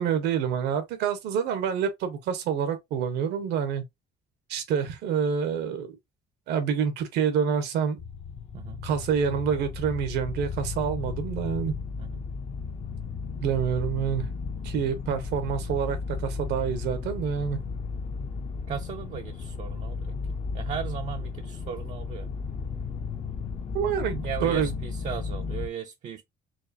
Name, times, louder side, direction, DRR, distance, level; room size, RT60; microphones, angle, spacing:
voice 1, 0.0-3.8 4.5-6.0 6.5-8.0 8.8-11.7 13.4-14.3 14.6-17.6 23.7-24.7, right 7 dB, 85° right, 1.1 m, -27 dB
sound 1, 8.0-25.7, left 5 dB, 40° left, 0.6 m, -34 dB
voice 2, 18.7-20.2 20.5-22.3 24.2-26.2, right 8 dB, 45° right, 0.5 m, -37 dB
4.6 x 2.5 x 2.7 m
cardioid pair, 110°, 17 cm